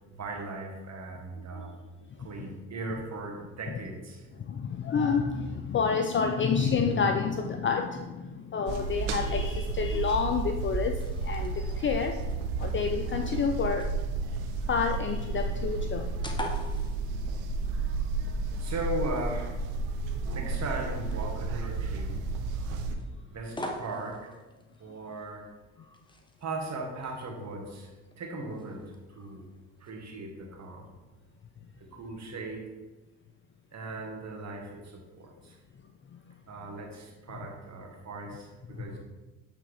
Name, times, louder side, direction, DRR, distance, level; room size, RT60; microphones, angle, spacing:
voice 1, 0.1-1.7 2.2-4.3 18.6-19.6 20.3-22.2 23.3-24.3 24.8-25.5 26.4-27.9 28.2-29.4 29.8-30.9 31.9-32.7 33.7-35.6 36.5-39.0, right 2 dB, 45° right, 1 dB, 1.7 m, -38 dB
voice 2, 4.4-12.2 12.6-13.9 14.7-16.1 36.1-36.2, left 5 dB, 30° left, 5 dB, 0.5 m, -29 dB
sound 1, 8.7-22.9, right 3 dB, 75° right, 0.7 m, -32 dB
sound 2, 10.4-30.1, left 1 dB, 10° left, 0.9 m, -47 dB
8.3 x 3.6 x 3.4 m, 1.2 s
hypercardioid pair, 60°, 38 cm